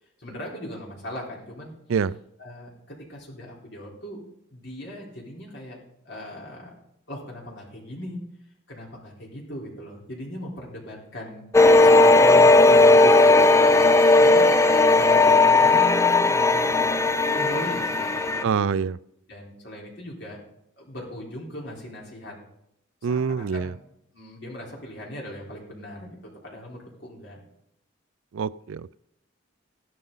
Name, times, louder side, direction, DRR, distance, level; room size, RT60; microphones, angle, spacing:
voice 1, 0.2-1.7 2.4-4.2 4.5-5.8 6.0-6.7 7.1-8.2 8.7-13.9 14.2-14.5 14.9-18.8 19.3-20.4 20.8-22.3 23.0-23.8 24.1-26.2 26.4-27.4, left 1 dB, 55° left, -3 dB, 4.1 m, -39 dB
sound 1, 11.5-18.4, left 2 dB, 15° left, 0.4 m, -16 dB
voice 2, 18.4-19.0 23.0-23.7 28.3-29.0, right 6 dB, 75° right, 19 dB, 0.4 m, -25 dB
15.0 x 12.5 x 3.9 m, 0.78 s
head